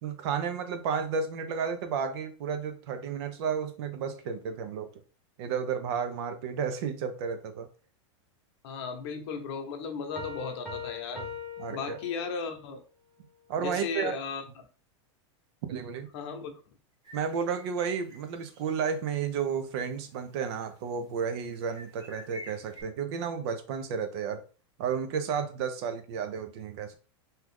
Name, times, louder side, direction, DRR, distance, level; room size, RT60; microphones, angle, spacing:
voice 1, 0.0-4.9 5.4-7.7 11.6-12.0 13.5-14.2 15.7-16.1 17.1-24.4 24.8-27.0, right 6 dB, 60° right, 0.6 m, -32 dB
voice 2, 8.6-11.3 11.7-12.8 13.6-14.7 16.1-16.5, left 5 dB, 60° left, 0.8 m, -36 dB
Piano, 10.2-12.6, left 5 dB, 5° left, 0.9 m, -40 dB
sound 1, 17.0-18.9 19.3-19.4 19.9-20.7 21.3-22.8, left 1 dB, 30° right, 1.5 m, -50 dB
2.8 x 2.4 x 3.3 m
supercardioid pair, 135°, 16 cm